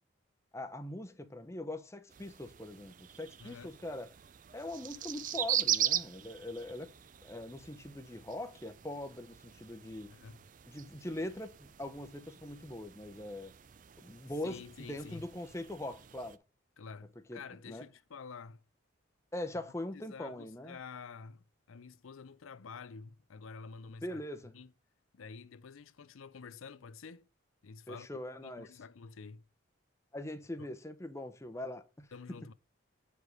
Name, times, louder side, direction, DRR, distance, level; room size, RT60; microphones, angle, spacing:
voice 1, 0.5-4.1 4.5-6.9 7.2-10.1 10.7-13.5 14.0-16.4 17.3-17.4 17.7-17.8 19.3-20.8 24.0-24.5 27.9-28.7 30.1-32.1, left 1 dB, 15° left, 0.7 m, -42 dB
sound 1, 2.1-16.4, right 11 dB, 40° right, 0.4 m, -40 dB
voice 2, 3.4-3.8 10.1-10.4 14.4-15.3 16.8-18.6 19.9-24.2 24.5-24.7 25.1-27.3 27.6-28.1 28.4-29.4 30.6-30.7 32.1-32.5, left 5 dB, 80° left, 0.5 m, -49 dB
7.9 x 5.0 x 5.2 m
head